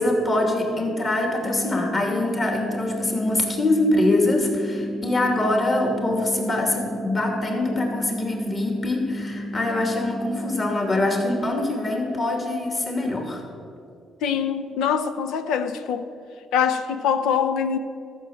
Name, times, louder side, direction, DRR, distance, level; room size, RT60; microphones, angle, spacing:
voice 1, 0.0-13.4, left 2 dB, 40° left, 2.6 m, -24 dB
sound 1, 1.4-11.4, equal, 10° left, 1.5 m, -32 dB
voice 2, 14.2-16.1 16.5-17.8, left 7 dB, 90° left, 0.7 m, -23 dB
13.5 x 6.5 x 7.1 m
cardioid pair, 90°, 0 cm